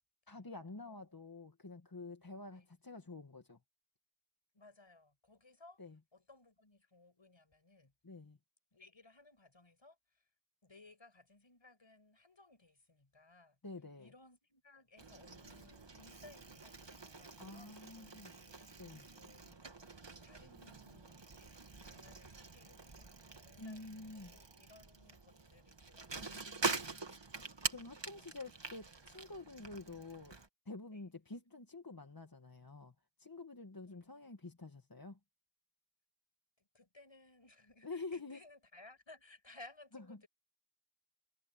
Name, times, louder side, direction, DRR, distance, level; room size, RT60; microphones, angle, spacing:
voice 1, 0.3-3.6 5.8-6.0 8.0-8.4 13.6-14.1 17.4-18.3 18.8-19.1 23.6-24.4 27.7-30.4 30.7-35.2 37.8-38.4 39.9-40.2, left 3 dB, 45° left, 2.0 m, -48 dB
voice 2, 4.5-5.8 6.1-7.9 8.7-10.2 10.6-13.6 14.0-18.5 19.1-19.6 20.2-21.5 21.8-23.1 23.4-24.0 24.3-27.2 28.1-28.4 30.9-31.0 33.8-34.3 36.6-40.3, left 2 dB, 65° left, 7.0 m, -61 dB
Bicycle, 15.0-30.5, right 3 dB, 60° right, 2.2 m, -45 dB
wide cardioid pair, 45°, 48 cm